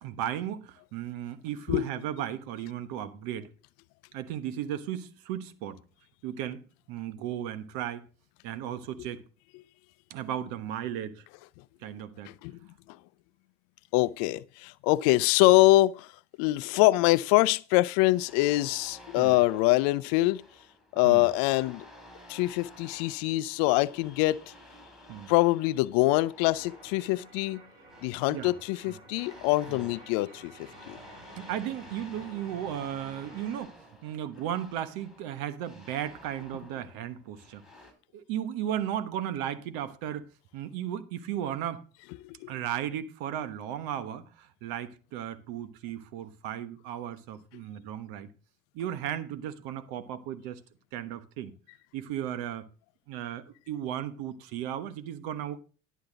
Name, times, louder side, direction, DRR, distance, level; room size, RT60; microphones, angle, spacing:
voice 1, 0.0-3.5 4.1-5.8 6.2-8.1 8.4-9.2 10.1-11.2 11.8-12.3 19.2-19.3 21.0-21.2 25.1-25.3 28.3-28.5 28.9-29.0 29.7-29.9 31.4-37.6 38.1-40.3 40.5-41.8 42.5-48.3 48.7-50.6 50.9-51.6 51.9-52.7 53.1-55.6, right 10 dB, 65° right, 1.2 m, -35 dB
voice 2, 13.9-16.1 16.4-20.4 20.9-21.9 22.3-24.4 25.3-27.6 28.0-31.0 42.2-42.5, left 19 dB, 65° left, 0.5 m, -24 dB
sound 1, 18.1-37.9, left 1 dB, ahead, 4.3 m, -52 dB
sound 2, 26.5-33.6, right 1 dB, 85° right, 3.9 m, -52 dB
11.5 x 8.1 x 3.9 m
hypercardioid pair, 75°, 38 cm